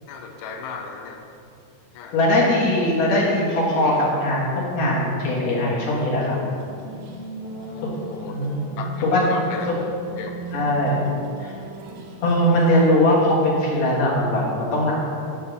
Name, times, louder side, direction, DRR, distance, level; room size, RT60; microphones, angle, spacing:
voice 1, 0.1-1.2 1.9-2.2 7.4-8.5 8.8-9.7 10.2-10.3, left 5 dB, 90° left, 3 dB, 2.8 m, -36 dB
voice 2, 2.1-4.5 4.7-6.4 8.3-8.7 9.0-9.3 9.7-9.8 10.5-11.0 11.4-11.5 12.2-14.9, left 1 dB, 60° left, -5 dB, 2.1 m, -20 dB
sound 1, 6.5-12.8, right 3 dB, 80° right, 2.6 m, -37 dB
7.0 x 4.9 x 7.0 m, 2.5 s
omnidirectional pair, 4.7 m